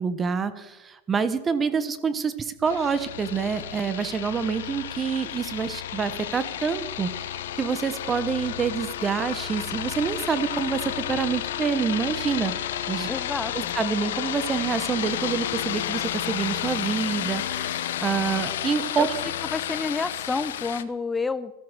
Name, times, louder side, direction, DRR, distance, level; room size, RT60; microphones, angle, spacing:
voice 1, 0.0-12.5 12.9-13.1 13.5-19.2, right 6 dB, 20° right, 13 dB, 1.0 m, -27 dB
sound 1, 2.6-20.8, left 11 dB, 85° left, 1.0 m, -31 dB
voice 2, 13.1-13.7 19.0-19.1 19.5-21.5, left 4 dB, 10° left, 14 dB, 0.5 m, -29 dB
14.5 x 13.0 x 6.5 m, 1.0 s
supercardioid pair, 120°, 0 cm